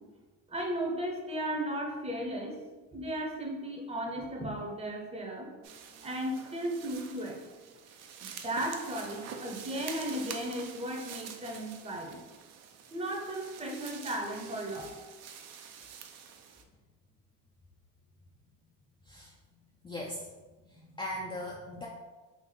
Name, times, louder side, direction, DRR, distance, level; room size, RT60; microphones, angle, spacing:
voice 1, 0.5-2.6 2.9-5.5 6.0-7.4 8.2-12.2 12.9-14.9, right 1 dB, 20° right, 1 dB, 0.7 m, -35 dB
sound 1, 5.6-16.6, right 7 dB, 50° right, 0.5 m, -47 dB
voice 2, 19.8-20.3 20.6-21.9, left 1 dB, 15° left, -3 dB, 0.4 m, -39 dB
3.4 x 2.4 x 3.8 m, 1.3 s
supercardioid pair, 105°, 35 cm